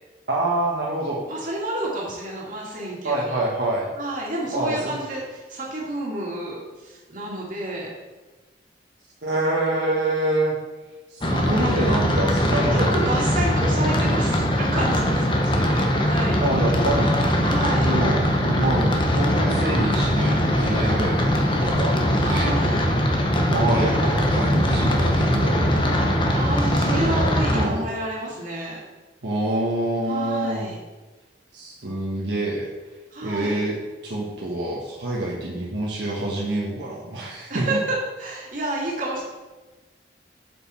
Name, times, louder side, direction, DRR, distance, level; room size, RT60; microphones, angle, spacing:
voice 1, 0.3-1.2 3.0-3.9 4.5-4.9 9.2-10.6 11.1-13.4 16.4-17.6 17.8-22.0 22.2-22.5 23.5-26.2 27.5-27.9 29.2-30.7 31.5-32.7 33.2-33.8 34.0-37.8, right 1 dB, 75° right, -4 dB, 1.3 m, -26 dB
voice 2, 1.3-3.4 4.0-7.9 11.2-11.8 12.7-16.4 17.4-17.9 22.2-22.8 26.3-28.8 30.1-30.8 33.1-33.6 37.5-39.2, right 1 dB, 45° right, -4 dB, 2.3 m, -30 dB
sound 1, 11.2-27.7, equal, 25° left, 0.9 m, -21 dB
7.3 x 6.7 x 4.4 m, 1.2 s
head